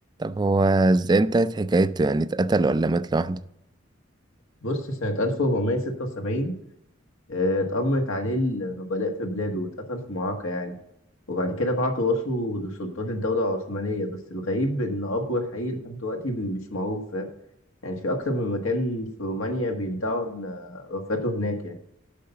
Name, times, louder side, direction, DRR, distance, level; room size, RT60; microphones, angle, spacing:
voice 1, 0.2-3.4, right 2 dB, 20° right, 0.3 m, -21 dB
voice 2, 4.6-6.5 7.3-10.7 11.3-17.3 17.8-21.7, left 1 dB, 85° left, 1.6 m, -27 dB
8.5 x 5.6 x 6.9 m
head